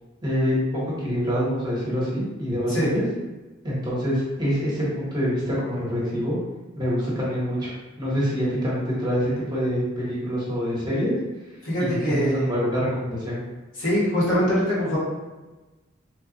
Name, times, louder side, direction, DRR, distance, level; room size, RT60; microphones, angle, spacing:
voice 1, 0.2-3.0 3.6-6.4 6.8-7.7 8.0-11.1 11.8-13.4, equal, 20° right, -7 dB, 1.0 m, -25 dB
voice 2, 11.6-12.5 13.8-15.0, equal, 70° left, -8 dB, 1.5 m, -23 dB
3.2 x 2.4 x 3.7 m, 1.2 s
head